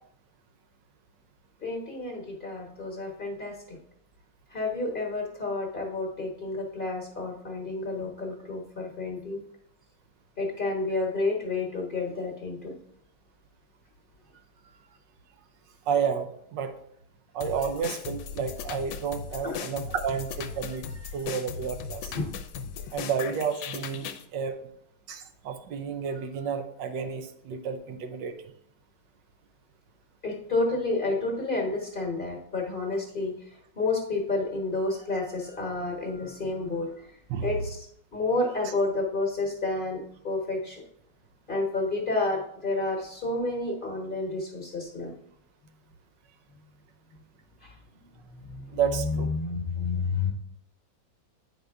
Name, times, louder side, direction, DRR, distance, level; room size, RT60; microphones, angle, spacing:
voice 1, 1.6-3.8 4.5-9.4 10.4-12.7 19.4-19.6 22.1-22.3 24.0-24.1 30.2-33.3 33.8-37.1 37.4-40.8 41.5-45.1 47.6-50.3, left 3 dB, 35° left, 0 dB, 1.2 m, -30 dB
voice 2, 15.9-16.7 17.3-22.1 22.9-24.6 25.1-28.3 37.3-37.5 48.7-49.3, right 7 dB, 80° right, 7 dB, 1.4 m, -31 dB
sound 1, 17.4-24.3, left 7 dB, 75° left, 1.2 m, -38 dB
8.9 x 5.3 x 3.4 m, 0.70 s
omnidirectional pair, 1.9 m